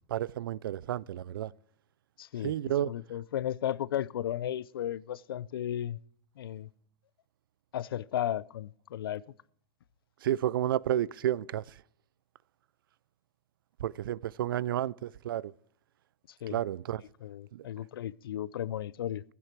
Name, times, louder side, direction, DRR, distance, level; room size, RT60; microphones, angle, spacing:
voice 1, 0.1-1.5 2.4-2.9 10.2-11.6 13.8-15.5 16.5-17.0 17.5-17.7, right 12 dB, 75° right, 0.4 m, -31 dB
voice 2, 2.2-6.0 6.4-6.7 7.7-9.2 16.4-16.6 17.2-19.2, left 11 dB, 90° left, 0.5 m, -34 dB
15.0 x 9.7 x 4.5 m
supercardioid pair, 175°, 12 cm